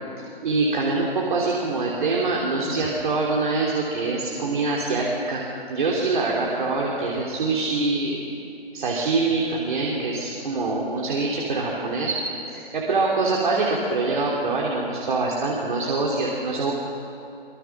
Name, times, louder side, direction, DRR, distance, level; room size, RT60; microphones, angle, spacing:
voice 1, 0.4-5.4 5.7-8.2 8.7-12.1 12.5-16.7, right 3 dB, 50° right, -3 dB, 3.5 m, -24 dB
25.0 x 23.0 x 6.2 m, 2.7 s
hypercardioid pair, 155°, 31 cm